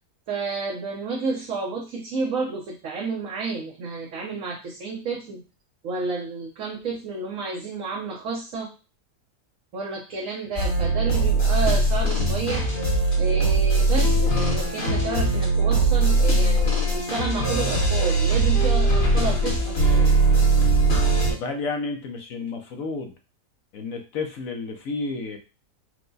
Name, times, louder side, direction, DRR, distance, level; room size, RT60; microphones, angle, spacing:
voice 1, 0.3-5.4 5.8-8.7 9.7-12.8 13.2-20.2, right 4 dB, 60° right, -2 dB, 1.1 m, -31 dB
sound 1, 10.6-21.3, right 2 dB, 40° left, 1.5 m, -20 dB
voice 2, 21.3-23.1 23.7-25.4, left 3 dB, 60° left, 4 dB, 1.1 m, -31 dB
4.6 x 2.2 x 3.9 m, 0.32 s
omnidirectional pair, 1.8 m